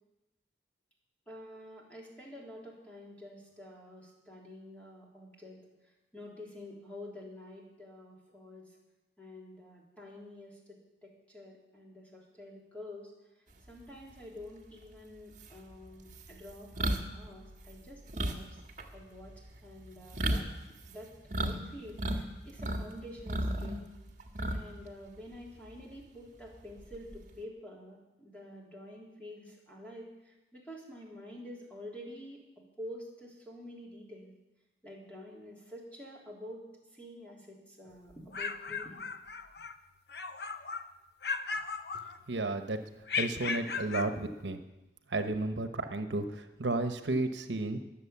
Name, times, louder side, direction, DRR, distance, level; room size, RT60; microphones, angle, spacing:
voice 1, 1.3-5.6 6.1-8.7 9.2-13.1 13.7-18.6 18.9-20.5 20.9-21.1 21.4-23.8 24.5-32.4 32.8-34.3 34.8-36.6 36.9-39.1, left 1 dB, 10° left, -3 dB, 3.4 m, -48 dB
sound 1, 14.8-14.9 15.4-21.6 21.8-22.8 23.2-24.8 25.2-25.4 26.8-27.3, right 1 dB, 45° right, 1.5 m, -34 dB
sound 2, 38.1-39.8 40.1-40.9 41.2-42.5 43.1-44.2, left 5 dB, 65° left, 0.8 m, -36 dB
voice 2, 42.3-42.8 43.2-44.6 45.1-47.8, right 2 dB, 85° right, 8 dB, 1.0 m, -32 dB
21.5 x 7.7 x 7.2 m, 1.0 s
head